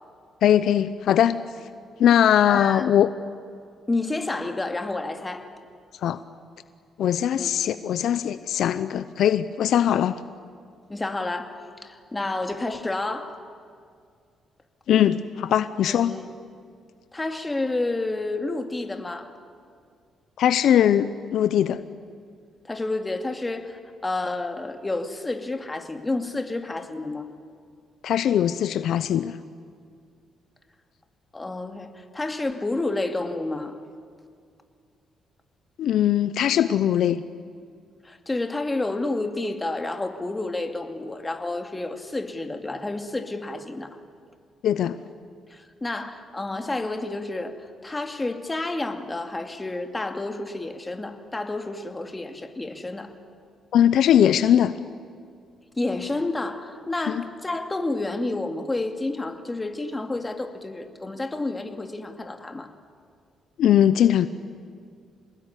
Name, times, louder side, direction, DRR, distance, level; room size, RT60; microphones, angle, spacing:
voice 1, 0.4-1.4 2.0-3.1 6.0-6.2 7.0-10.2 14.9-16.2 20.4-21.8 28.0-29.4 35.8-37.2 44.6-45.0 53.7-54.7 57.1-57.2 63.6-64.3, left 10 dB, 75° left, 13 dB, 0.7 m, -20 dB
voice 2, 2.4-2.9 3.9-5.5 7.3-7.5 10.9-13.4 15.9-16.3 17.1-19.4 22.6-27.3 31.3-33.8 38.0-43.9 45.5-53.1 55.8-62.7, left 2 dB, 20° left, 6 dB, 2.4 m, -30 dB
26.5 x 20.0 x 9.9 m, 2.2 s
cardioid pair, 90°, 0 cm